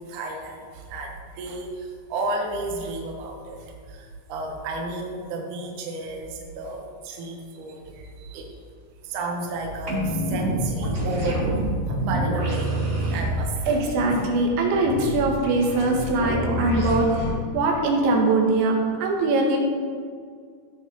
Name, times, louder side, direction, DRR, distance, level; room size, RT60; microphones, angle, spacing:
voice 1, 0.0-8.0 8.3-8.5 9.0-13.8, right 2 dB, 60° right, 0 dB, 2.4 m, -32 dB
sound 1, 9.9-17.3, right 1 dB, 30° right, 1.5 m, -27 dB
voice 2, 13.7-17.1 17.5-19.6, right 2 dB, 90° right, 0 dB, 3.8 m, -22 dB
15.5 x 7.3 x 4.4 m, 2.1 s
omnidirectional pair, 5.1 m